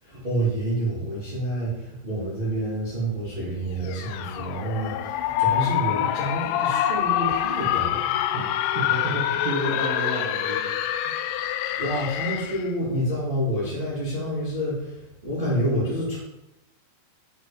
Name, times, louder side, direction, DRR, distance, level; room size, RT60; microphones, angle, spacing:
voice 1, 0.0-8.1 11.8-16.2, right 1 dB, 80° right, -8 dB, 0.5 m, -28 dB
sound 1, 3.9-12.7, left 11 dB, 90° left, 3.1 m, -26 dB
voice 2, 8.7-11.1, right 1 dB, 55° right, -6 dB, 1.8 m, -31 dB
7.8 x 5.3 x 5.0 m, 0.91 s
omnidirectional pair, 5.5 m